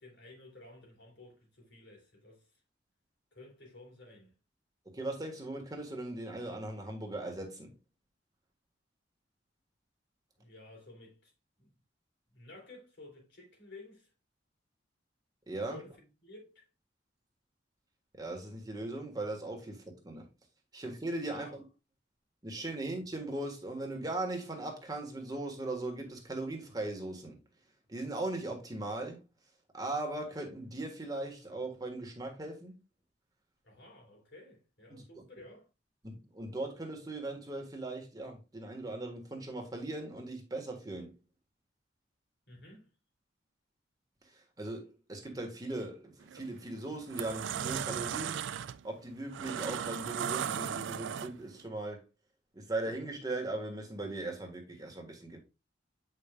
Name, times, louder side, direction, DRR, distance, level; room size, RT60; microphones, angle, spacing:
voice 1, 0.0-2.5 3.3-4.3 10.4-11.3 11.6-11.7 12.3-14.1 15.7-16.6 21.3-21.6 33.6-35.7 42.5-42.9, left 2 dB, 75° left, 3.7 m, -53 dB
voice 2, 4.8-7.7 15.5-15.8 18.1-20.3 20.7-21.6 22.4-27.4 27.9-29.2 29.7-32.8 34.9-35.2 36.0-41.2 44.3-48.4 48.8-52.0 52.5-55.4, right 2 dB, 20° right, 1.6 m, -39 dB
sound 1, 46.2-46.5 46.9-51.6, right 8 dB, 80° right, 0.4 m, -36 dB
8.3 x 5.4 x 2.4 m
head